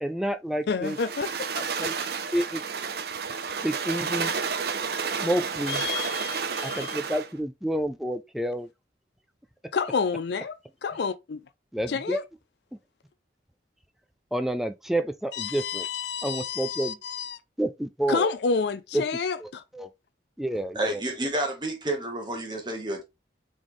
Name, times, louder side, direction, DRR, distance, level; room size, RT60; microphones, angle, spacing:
voice 1, 0.0-1.0 1.8-2.0 2.3-2.6 3.6-4.4 5.2-5.8 6.6-8.7 11.7-12.2 14.3-15.9 16.2-17.0 17.6-18.3 18.9-19.0 19.4-19.9 20.4-21.0, right 1 dB, ahead, 0.3 m, -29 dB
voice 2, 0.7-1.9 5.7-6.9 9.7-11.4 11.9-12.2 15.3-17.4 18.1-19.6, left 5 dB, 65° left, 0.4 m, -30 dB
sound 1, 0.8-7.3, right 5 dB, 55° right, 0.6 m, -31 dB
voice 3, 20.7-23.0, right 1 dB, 25° right, 1.2 m, -30 dB
4.0 x 3.6 x 3.1 m
head